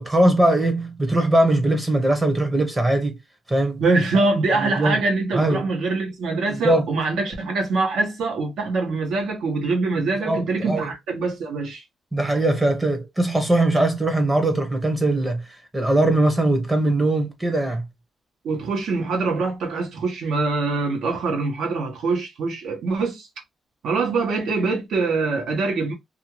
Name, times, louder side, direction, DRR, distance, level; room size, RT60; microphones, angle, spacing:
voice 1, 0.0-3.2 3.5-3.8 4.1-4.3 4.6-5.0 5.3-5.6 6.5-6.9 10.0-10.9 12.1-17.8, right 1 dB, 15° right, 0.7 m, -21 dB
voice 2, 3.8-11.8 18.4-23.3 23.8-25.9, right 3 dB, 80° right, 1.0 m, -24 dB
2.5 x 2.4 x 2.9 m
cardioid pair, 135°, 0 cm